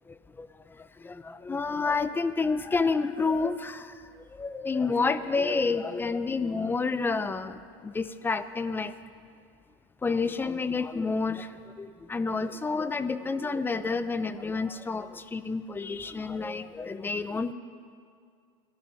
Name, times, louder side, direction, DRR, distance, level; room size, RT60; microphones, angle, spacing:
voice 1, 1.0-3.9 4.3-8.9 10.0-11.5 11.8-17.5, left 4 dB, 15° left, 13 dB, 0.6 m, -29 dB
20.0 x 13.0 x 5.6 m, 2.3 s
supercardioid pair, 120°, 15 cm